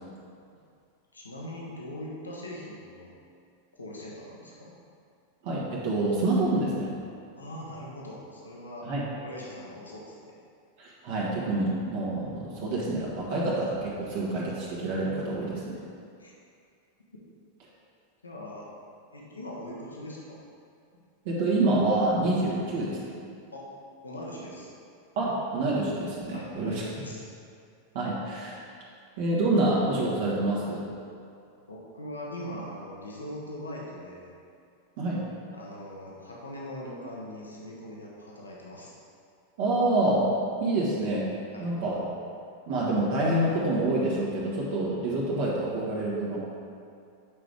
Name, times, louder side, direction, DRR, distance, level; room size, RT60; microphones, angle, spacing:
voice 1, 1.1-3.1 3.7-4.8 7.3-8.9 9.1-10.1 16.2-16.3 18.2-18.7 19.1-20.4 23.5-23.7 24.0-24.7 26.3-27.2 31.7-34.3 35.5-38.9 41.5-41.7, left 1 dB, 75° left, -4 dB, 1.1 m, -41 dB
voice 2, 5.4-6.9 8.8-9.0 10.8-15.7 21.2-23.1 25.1-26.8 27.9-28.6 29.2-30.8 35.0-35.2 39.6-40.2 40.6-41.3 41.6-42.0 42.7-46.4, right 2 dB, 50° right, -6 dB, 1.4 m, -27 dB
8.5 x 5.0 x 3.6 m, 2.4 s
figure-of-eight pair, 90°, 0 cm